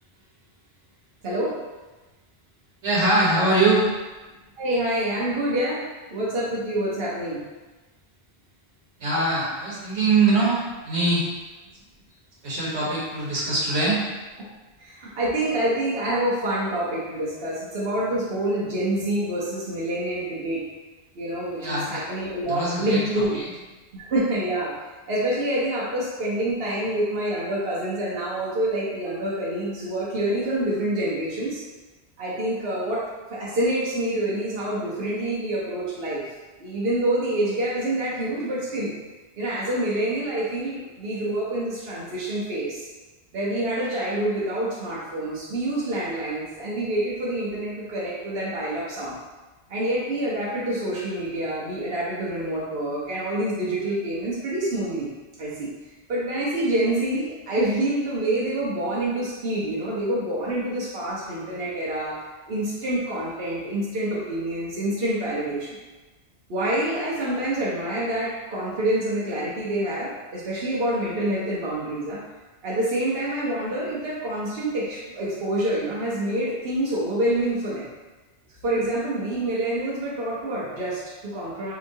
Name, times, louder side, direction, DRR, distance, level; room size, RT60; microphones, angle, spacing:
voice 1, 1.2-1.6 4.6-5.8 6.1-7.4 14.8-20.6 21.2-23.4 23.9-24.7 25.1-31.6 32.2-33.0 33.3-36.2 36.6-38.9 39.4-42.9 43.3-49.2 49.7-55.1 55.4-55.7 56.1-62.2 62.5-65.8 66.5-72.2 72.6-77.8 78.6-81.7, right 1 dB, 60° right, -7 dB, 1.1 m, -27 dB
voice 2, 2.8-3.9 9.0-10.6 10.8-11.3 12.4-14.0 21.6-22.0 22.4-23.5, right 2 dB, 80° right, -6 dB, 1.4 m, -22 dB
4.8 x 2.9 x 2.7 m, 1.2 s
omnidirectional pair, 1.1 m